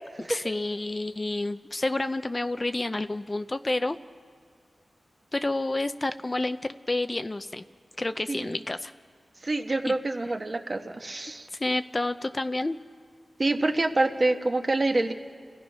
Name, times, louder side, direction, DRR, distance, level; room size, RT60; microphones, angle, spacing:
voice 1, 0.2-4.0 5.3-6.6 6.9-7.6 8.0-8.9 9.9-10.0 11.5-12.8, left 2 dB, 30° left, 10 dB, 0.5 m, -29 dB
voice 2, 9.4-11.5 13.4-15.1, right 2 dB, 40° right, 4 dB, 1.3 m, -26 dB
30.0 x 16.0 x 5.6 m, 2.1 s
wide cardioid pair, 80°, 0 cm